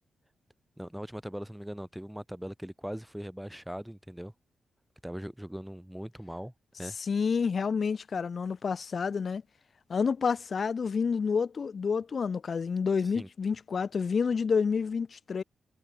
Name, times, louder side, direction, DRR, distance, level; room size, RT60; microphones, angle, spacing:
voice 1, 0.8-4.3 5.0-6.5 6.8-7.0 13.1-13.3, equal, 5° right, 7.3 m, -40 dB
voice 2, 7.0-9.4 9.9-15.4, left 5 dB, 55° left, 3.7 m, -29 dB
cardioid pair, 70°, 0 cm